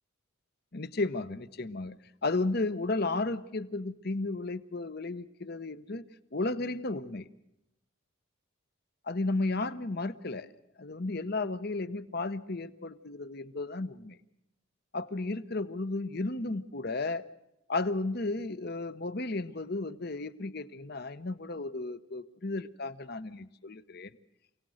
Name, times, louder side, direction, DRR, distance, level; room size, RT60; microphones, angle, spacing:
voice 1, 0.7-6.0 6.3-7.3 9.1-10.5 10.8-14.2 14.9-17.3 17.7-24.1, left 2 dB, 50° left, 14 dB, 0.9 m, -33 dB
28.0 x 18.0 x 6.4 m, 0.85 s
head